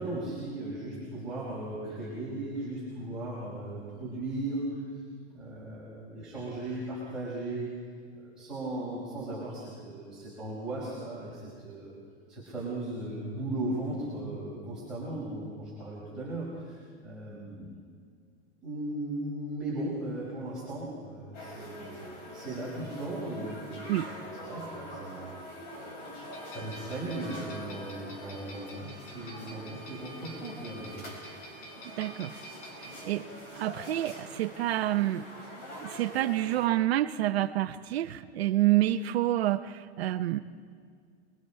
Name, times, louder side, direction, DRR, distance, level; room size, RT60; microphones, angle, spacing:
voice 1, 0.0-4.6 4.9-5.0 5.3-7.7 8.1-11.9 12.3-17.8 18.6-22.0 22.3-24.0 24.4-25.4 26.5-30.9, right 2 dB, ahead, -10 dB, 5.1 m, -37 dB
sound 1, 21.3-36.7, equal, 30° left, 4.6 m, -45 dB
sound 2, 26.3-33.4, equal, 50° left, 5.4 m, -49 dB
voice 2, 32.0-32.4 32.8-33.3 33.5-35.3 35.8-40.4, right 14 dB, 65° right, 10 dB, 0.8 m, -28 dB
27.5 x 22.0 x 4.5 m, 2.1 s
supercardioid pair, 170°, 34 cm